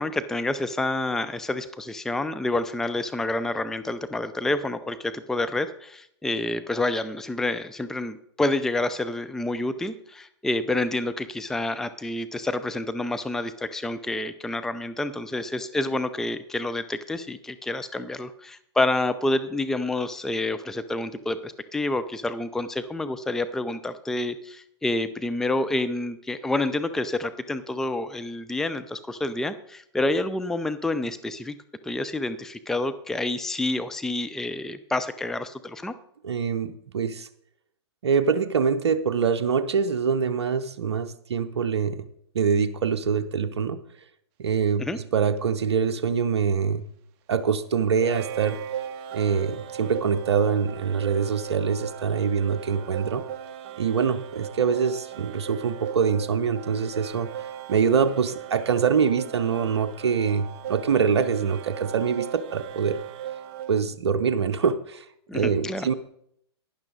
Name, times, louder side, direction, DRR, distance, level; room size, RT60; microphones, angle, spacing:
voice 1, 0.0-31.5 31.8-35.9 44.8-45.0 65.3-65.9, left 2 dB, 5° left, 11 dB, 0.5 m, -28 dB
voice 2, 36.2-37.3 38.0-42.0 42.3-43.8 44.4-46.9 47.3-48.6 49.1-53.3 53.8-57.3 57.7-63.0 63.7-65.1 65.3-65.9, right 6 dB, 70° right, 8 dB, 0.7 m, -24 dB
sound 1, 45.4-45.5 48.0-63.8, right 11 dB, 40° right, 0.8 m, -38 dB
12.0 x 10.0 x 4.0 m, 0.70 s
hypercardioid pair, 110°, 14 cm